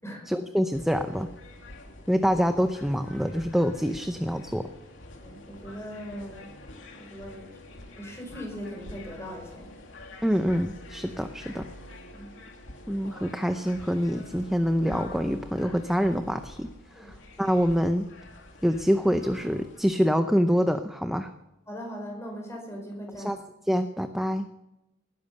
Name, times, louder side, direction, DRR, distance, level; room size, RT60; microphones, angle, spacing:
voice 1, 0.3-1.3 2.1-4.7 10.2-11.7 12.9-16.7 17.0-18.1 18.6-21.3 23.2-23.4 23.7-24.5, equal, ahead, 7 dB, 0.6 m, -26 dB
sound 1, 0.7-19.8, left 1 dB, 70° left, 2.6 m, -47 dB
voice 2, 5.2-7.6 8.0-9.7 12.1-12.3 17.0-17.1 21.7-23.3, equal, 15° left, 1 dB, 5.1 m, -40 dB
19.5 x 10.5 x 6.8 m, 0.94 s
head